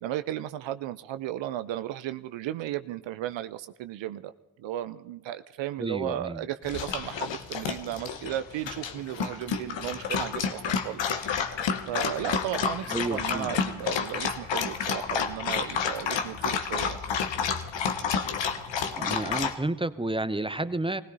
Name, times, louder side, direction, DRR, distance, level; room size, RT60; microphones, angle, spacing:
voice 1, 0.0-4.3 4.6-11.2 11.9-17.0, right 12 dB, 85° right, 12 dB, 0.6 m, -35 dB
voice 2, 5.8-6.4 12.9-13.5 18.8-21.0, right 2 dB, 10° right, 13 dB, 0.9 m, -31 dB
Dog, 6.6-19.5, left 6 dB, 80° left, 1.2 m, -30 dB
18.5 x 17.0 x 4.1 m, 1.1 s
supercardioid pair, 45°, 44 cm